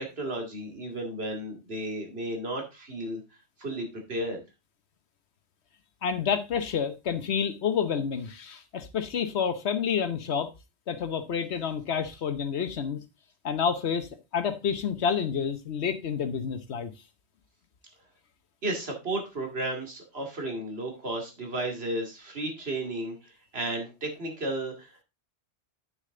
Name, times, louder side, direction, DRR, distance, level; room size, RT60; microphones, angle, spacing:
voice 1, 0.0-3.2 3.6-4.4 18.6-25.0, right 1 dB, 65° right, 2.6 m, -33 dB
voice 2, 6.0-10.5 10.9-13.0 13.4-14.1 14.3-16.9, left 7 dB, 75° left, 1.1 m, -29 dB
9.0 x 6.5 x 3.7 m
omnidirectional pair, 1.1 m